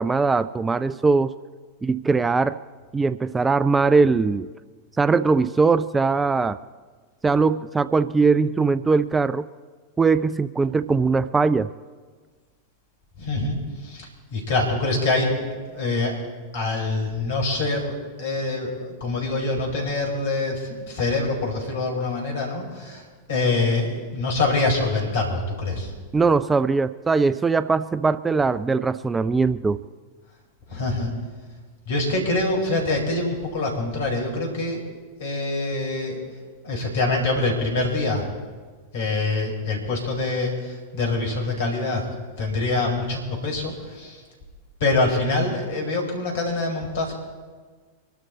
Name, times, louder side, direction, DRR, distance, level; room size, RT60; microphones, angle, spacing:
voice 1, 0.0-1.3 1.8-2.6 2.9-4.5 5.0-6.6 7.2-9.5 10.0-11.7 26.1-29.8, right 4 dB, 15° right, 14 dB, 0.4 m, -20 dB
voice 2, 13.2-16.2 16.5-25.9 30.7-31.1 31.9-34.8 35.2-36.2 36.6-38.3 38.9-42.1 42.4-44.2 44.8-47.1, left 2 dB, 55° left, 1 dB, 5.0 m, -25 dB
24.5 x 12.5 x 4.2 m, 1.4 s
figure-of-eight pair, 90°, 0 cm